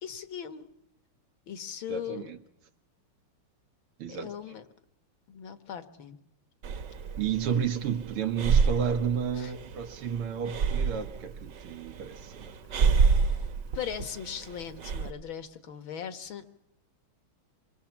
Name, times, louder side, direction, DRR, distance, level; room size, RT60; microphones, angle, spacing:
voice 1, 0.0-0.7 1.5-2.3 4.1-4.7 5.3-6.2 9.4-9.5 12.7-12.8 13.7-16.6, left 8 dB, 65° left, 2.2 m, -39 dB
voice 2, 1.9-2.4 4.0-4.3 7.2-12.6, right 7 dB, 85° right, 2.5 m, -31 dB
Breathing, 6.6-15.1, right 5 dB, 55° right, 1.7 m, -28 dB
27.0 x 23.0 x 7.3 m
omnidirectional pair, 2.4 m